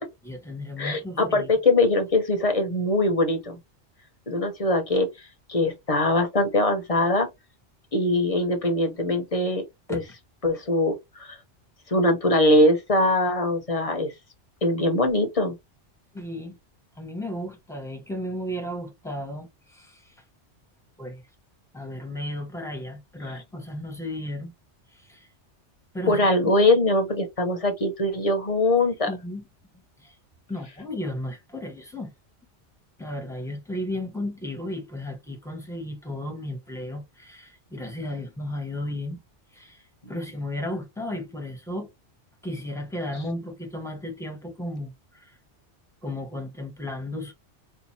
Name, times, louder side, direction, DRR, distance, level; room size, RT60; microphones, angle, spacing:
voice 1, 0.2-1.5 9.9-10.0 16.1-16.6 17.0-20.1 21.0-21.2 21.7-24.5 24.9-25.3 25.9-26.5 29.1-29.4 30.0-30.2 30.5-32.1 33.0-39.2 39.5-41.9 42.4-45.3 46.0-47.3, left 1 dB, 5° left, 1.0 m, -34 dB
voice 2, 0.8-3.6 4.3-5.1 5.5-7.3 7.9-9.6 9.9-10.0 10.4-11.4 11.9-14.1 14.6-15.6 26.1-29.1, left 1 dB, 35° left, 0.9 m, -22 dB
4.5 x 2.5 x 2.7 m
omnidirectional pair, 1.2 m